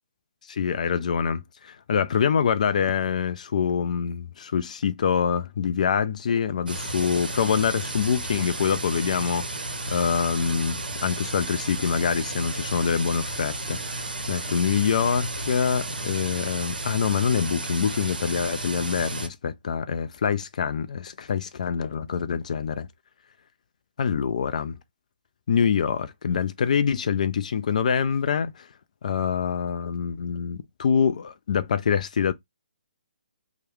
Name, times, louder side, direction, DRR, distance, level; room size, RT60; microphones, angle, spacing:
voice 1, 0.5-22.9 24.0-24.8 25.5-28.7 29.0-32.3, left 7 dB, 50° left, 0.4 m, -25 dB
sound 1, 6.7-19.3, right 2 dB, 75° right, 0.7 m, -33 dB
3.0 x 2.1 x 3.1 m
figure-of-eight pair, 140°, 5 cm